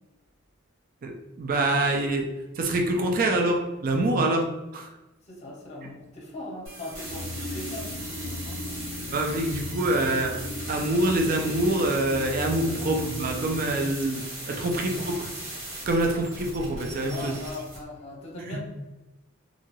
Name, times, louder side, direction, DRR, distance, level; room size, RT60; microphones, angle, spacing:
voice 1, 1.0-2.3 2.6-4.9 9.1-10.3 10.7-14.2 14.5-15.3 15.9-17.3 18.4-18.6, right 1 dB, 40° right, 2 dB, 0.3 m, -25 dB
voice 2, 5.3-8.6 12.6-12.7 14.7-14.8 17.1-18.6, left 1 dB, 30° left, -3 dB, 0.7 m, -39 dB
sound 1, 6.7-17.8, right 1 dB, 60° right, 1.1 m, -38 dB
sound 2, 7.0-13.7, left 1 dB, 55° left, 0.4 m, -37 dB
2.6 x 2.4 x 3.0 m, 1.0 s
head